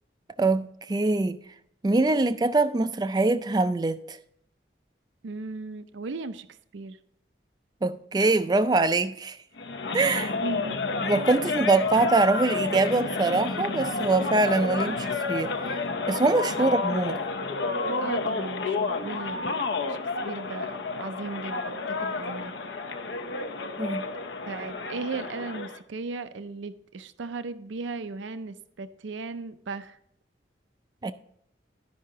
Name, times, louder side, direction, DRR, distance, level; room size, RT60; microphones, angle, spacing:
voice 1, 0.4-1.4 1.8-4.2 7.8-9.4 9.9-10.3 11.0-15.5 16.1-17.2 23.8-24.1 31.0-31.1, right 3 dB, 20° right, 0.3 m, -24 dB
voice 2, 5.2-6.5 6.7-7.0 10.4-10.8 11.4-11.5 16.6-17.0 18.0-19.6 19.9-22.6 24.5-30.0, right 3 dB, 80° right, 0.5 m, -37 dB
sound 1, 9.6-25.8, left 3 dB, 70° left, 0.6 m, -30 dB
11.5 x 5.5 x 3.7 m
head